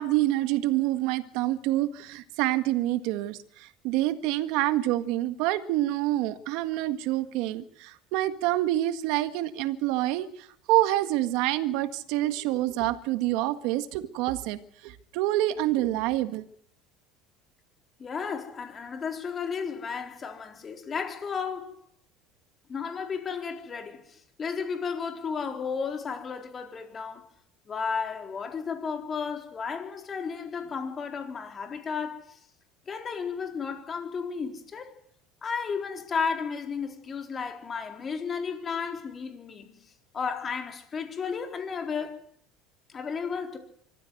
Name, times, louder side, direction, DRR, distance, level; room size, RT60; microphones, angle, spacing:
voice 1, 0.0-16.5, right 15 dB, 70° right, 1.7 m, -27 dB
voice 2, 18.0-21.8 22.7-27.3 27.7-32.4 32.9-34.9 35.4-39.8 40.1-42.2 42.9-43.6, left 6 dB, 25° left, 4.2 m, -33 dB
25.0 x 15.0 x 7.9 m
cardioid pair, 135°, 0 cm